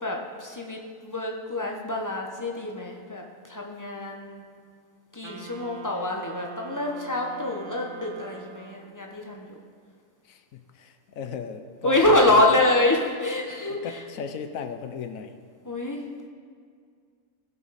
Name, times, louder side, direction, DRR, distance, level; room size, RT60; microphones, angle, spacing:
voice 1, 0.0-4.4 5.1-9.6 11.8-14.0 15.6-16.0, left 1 dB, 15° left, 0 dB, 0.8 m, -26 dB
Wind instrument woodwind instrument, 5.2-9.1, right 7 dB, 85° right, 1.3 m, -44 dB
voice 2, 10.2-12.7 13.7-15.3, left 6 dB, 65° left, 8 dB, 1.1 m, -36 dB
16.0 x 7.2 x 4.1 m, 2.1 s
omnidirectional pair, 1.6 m